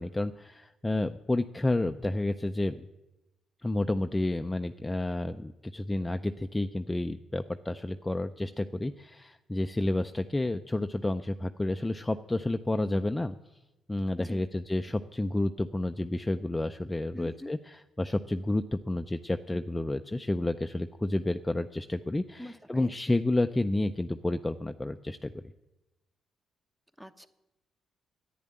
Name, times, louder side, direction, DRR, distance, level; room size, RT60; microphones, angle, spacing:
voice 1, 0.0-2.8 3.6-13.3 13.9-25.4, left 2 dB, 15° left, 7 dB, 0.5 m, -30 dB
voice 2, 17.1-17.5 22.4-23.2 27.0-27.3, equal, 5° right, 9 dB, 1.0 m, -44 dB
10.5 x 10.0 x 8.8 m, 0.97 s
cardioid pair, 90°, 0 cm